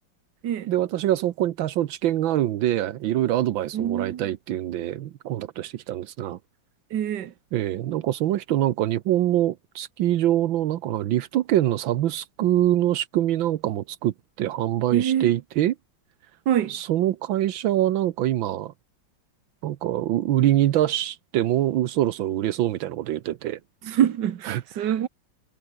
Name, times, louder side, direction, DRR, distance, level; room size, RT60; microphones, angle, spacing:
voice 1, 0.7-6.4 7.5-15.7 16.7-18.7 19.6-23.6 24.5-24.9, right 13 dB, 85° right, 1.6 m, -24 dB
voice 2, 3.7-4.3 6.9-7.3 14.9-15.3 16.5-16.8 23.8-25.1, right 10 dB, 65° right, 1.8 m, -25 dB
omnidirectional pair, 2.1 m